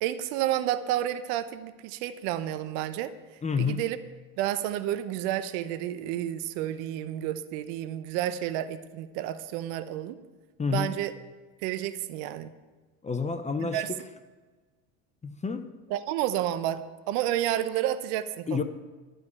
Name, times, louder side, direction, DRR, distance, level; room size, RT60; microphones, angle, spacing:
voice 1, 0.0-3.1 3.6-4.0 4.4-10.2 10.7-11.1 11.6-12.5 13.6-13.9 15.9-18.6, right 12 dB, 65° right, 12 dB, 0.9 m, -30 dB
voice 2, 3.4-3.8 10.6-10.9 13.0-13.8 15.2-15.7 18.5-18.6, left 5 dB, 15° left, 9 dB, 0.7 m, -29 dB
11.5 x 5.2 x 8.5 m, 1.3 s
hypercardioid pair, 90°, 44 cm